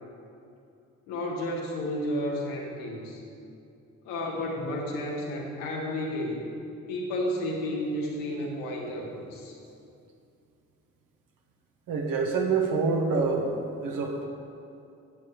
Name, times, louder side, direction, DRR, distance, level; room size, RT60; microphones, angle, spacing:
voice 1, 1.1-3.2 4.0-6.4 6.9-9.6, left 1 dB, 85° left, -2 dB, 1.4 m, -32 dB
voice 2, 11.9-13.5 13.8-14.3, right 4 dB, 70° right, 1 dB, 1.4 m, -26 dB
11.5 x 7.8 x 3.1 m, 2.6 s
hypercardioid pair, 45°, 34 cm